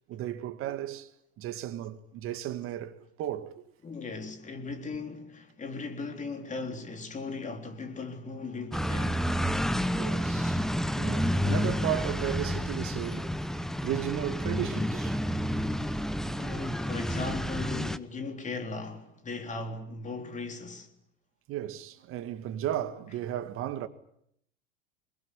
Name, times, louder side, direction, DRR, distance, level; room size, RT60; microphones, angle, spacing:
voice 1, 0.1-1.1 1.4-3.6 9.9-10.7 10.9-15.2 15.8-15.9 21.5-23.9, right 12 dB, 45° right, 2.2 m, -35 dB
voice 2, 3.8-9.3 16.3-20.9, left 3 dB, 25° left, 3.7 m, -38 dB
sound 1, 8.7-18.0, equal, ahead, 1.0 m, -30 dB
24.0 x 20.5 x 10.0 m
hypercardioid pair, 90°, 30 cm